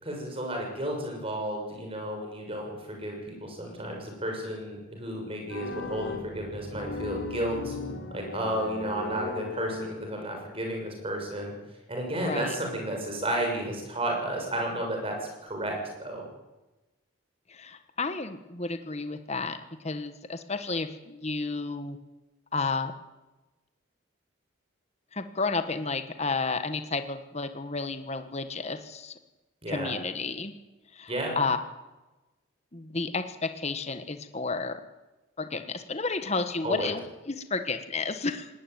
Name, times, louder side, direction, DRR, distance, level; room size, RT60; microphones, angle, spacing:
voice 1, 0.0-7.8 8.1-11.5 11.9-15.2 15.4-16.2 29.6-29.9 31.1-31.4 36.6-36.9, right 1 dB, 25° right, 1 dB, 6.5 m, -32 dB
sound 1, 5.5-10.4, left 3 dB, 65° left, 3.1 m, -37 dB
voice 2, 12.1-12.5 17.5-19.6 19.8-22.0 22.5-22.9 25.1-29.1 29.7-30.5 30.9-31.6 32.7-34.8 35.4-38.5, left 3 dB, 30° left, 9 dB, 1.3 m, -31 dB
19.0 x 18.5 x 9.3 m, 1.1 s
head